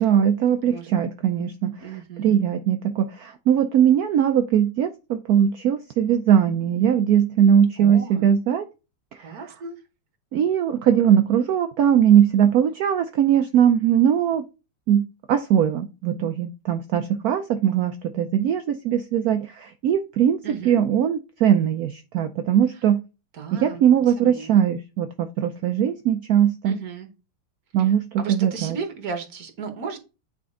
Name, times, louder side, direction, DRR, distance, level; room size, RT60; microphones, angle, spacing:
voice 1, 0.0-1.9 2.2-8.7 9.2-9.4 10.3-14.4 14.9-23.0 23.5-26.8 27.7-28.0 28.3-28.8, right 9 dB, 80° right, 7 dB, 0.8 m, -20 dB
voice 2, 1.8-2.4 7.8-8.3 9.2-9.8 20.4-20.8 22.7-22.8 23.3-24.6 26.6-27.1 27.8-30.0, right 5 dB, 50° right, 6 dB, 1.6 m, -35 dB
9.3 x 4.3 x 3.7 m, 0.30 s
omnidirectional pair, 2.2 m